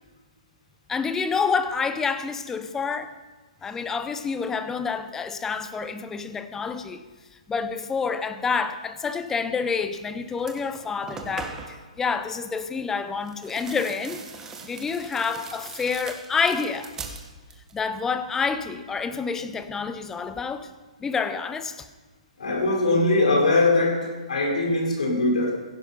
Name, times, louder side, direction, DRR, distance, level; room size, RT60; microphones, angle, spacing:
voice 1, 0.9-3.1 3.6-7.0 7.5-14.2 14.6-16.9 17.7-20.7 21.0-21.9, left 5 dB, 10° left, 0.7 m, -28 dB
sound 1, 9.9-10.1 10.4-11.9 13.2-17.8 18.1-18.7, right 5 dB, 15° right, 1.4 m, -41 dB
voice 2, 22.4-25.6, left 2 dB, 80° left, 4.5 m, -21 dB
16.0 x 9.8 x 5.6 m
hypercardioid pair, 145°, 4 cm